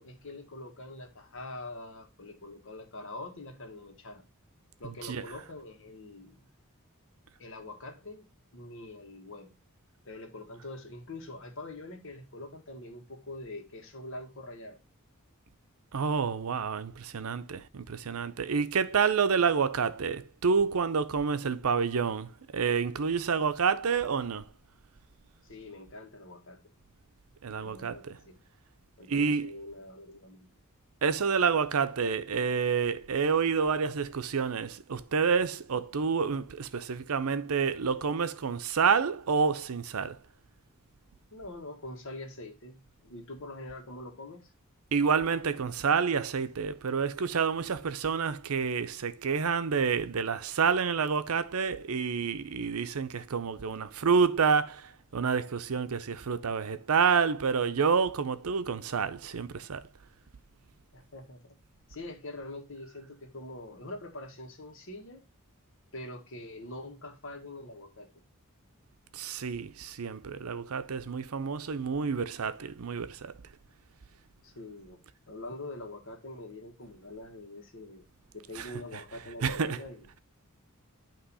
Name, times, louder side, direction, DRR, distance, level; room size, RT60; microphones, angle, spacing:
voice 1, 0.0-4.2 4.8-6.4 7.4-9.5 10.0-14.8 25.4-26.7 27.6-28.4 29.0-30.5 41.3-44.5 60.9-61.6 61.9-65.2 65.9-68.1 74.4-75.0 75.3-78.0 78.3-80.2, left 2 dB, 65° left, 1.5 m, -44 dB
voice 2, 15.9-24.4 27.4-28.2 29.1-29.5 31.0-40.2 44.9-59.8 69.1-73.3 78.6-78.7 79.4-79.8, right 5 dB, 80° right, 0.6 m, -28 dB
8.8 x 3.0 x 5.5 m
head